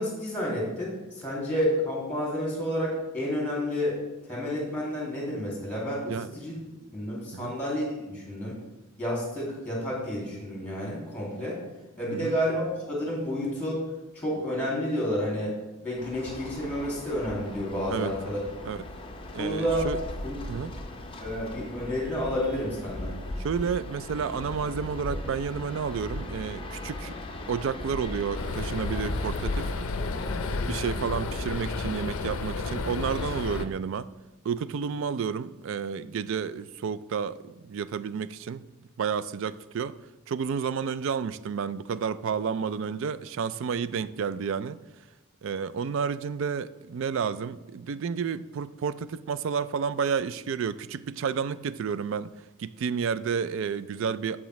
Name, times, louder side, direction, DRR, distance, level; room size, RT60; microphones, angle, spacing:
voice 1, 0.0-4.0 4.3-6.6 6.9-8.6 9.0-11.6 12.0-13.8 14.1-15.5 15.8-18.4 19.4-19.9 20.2-20.3 21.2-23.1, equal, 5° left, -4 dB, 2.3 m, -30 dB
sound 1, 16.0-33.7, left 1 dB, 25° left, 0.6 m, -38 dB
voice 2, 19.3-20.0 20.5-20.7 23.4-27.2 27.5-29.7 30.6-34.1 34.4-38.7 39.0-40.0 40.3-44.8 45.4-52.3 52.6-54.4, right 6 dB, 60° right, 15 dB, 0.3 m, -31 dB
sound 2, 28.3-33.7, left 3 dB, 70° left, 0.5 m, -32 dB
14.0 x 4.9 x 3.1 m, 1.0 s
head